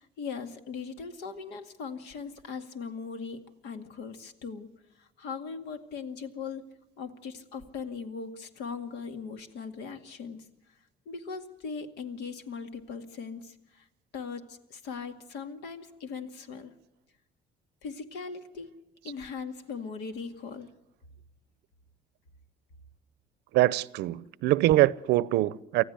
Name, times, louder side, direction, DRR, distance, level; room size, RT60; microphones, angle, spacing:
voice 1, 0.0-4.7 5.0-6.7 7.0-10.5 11.1-13.9 14.1-16.7 17.8-18.7 19.0-20.7, left 5 dB, 80° left, 2.2 m, -39 dB
voice 2, 23.5-25.8, right 16 dB, 85° right, 0.7 m, -24 dB
24.5 x 15.0 x 8.2 m
cardioid pair, 110°, 17 cm